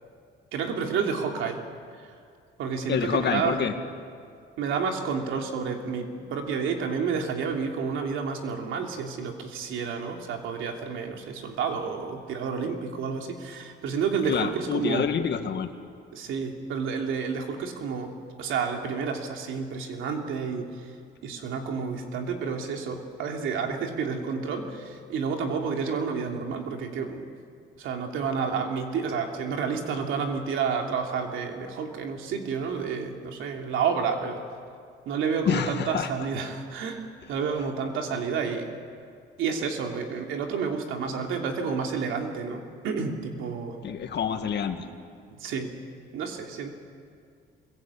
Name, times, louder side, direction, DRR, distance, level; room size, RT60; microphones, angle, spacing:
voice 1, 0.5-1.6 2.6-3.6 4.6-15.1 16.1-18.1 18.4-20.7 21.2-27.3 27.8-34.4 35.1-38.7 39.4-43.8 45.3-45.7 46.1-46.7, right 5 dB, 85° right, 3 dB, 3.0 m, -30 dB
voice 2, 2.9-3.7 14.3-15.7 35.5-36.1 43.8-44.9, left 7 dB, 60° left, 7 dB, 2.1 m, -27 dB
24.0 x 22.0 x 8.7 m, 2.2 s
cardioid pair, 90°, 20 cm